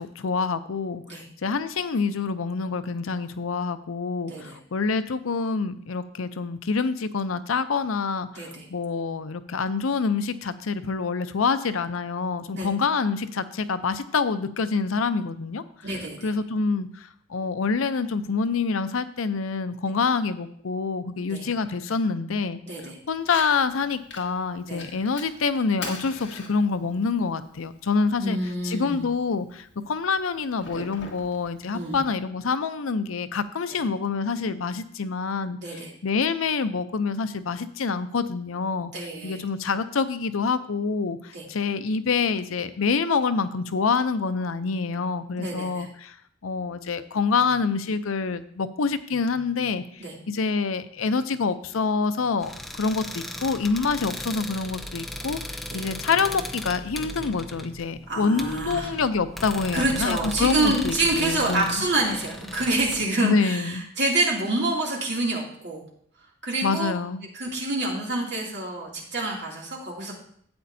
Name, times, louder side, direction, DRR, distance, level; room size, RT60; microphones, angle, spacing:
voice 1, 0.0-15.6 16.2-22.6 23.1-28.4 28.6-38.9 39.2-46.2 46.4-61.8 63.2-63.8 66.6-67.2, left 4 dB, 90° left, 11 dB, 0.6 m, -26 dB
voice 2, 15.8-16.3 21.3-21.4 22.6-23.0 24.7-24.8 28.2-29.0 31.7-32.0 33.7-33.8 35.6-35.9 38.9-39.4 41.3-41.4 45.4-45.9 50.0-50.1 55.7-55.8 58.1-58.9 59.7-65.8 66.4-66.9 67.3-70.2, right 2 dB, 55° right, -3 dB, 2.6 m, -27 dB
Fire, 23.2-32.2, left 3 dB, 60° left, 1.8 m, -43 dB
sound 1, 52.4-63.1, left 1 dB, ahead, 0.6 m, -37 dB
12.5 x 8.5 x 2.7 m, 0.63 s
head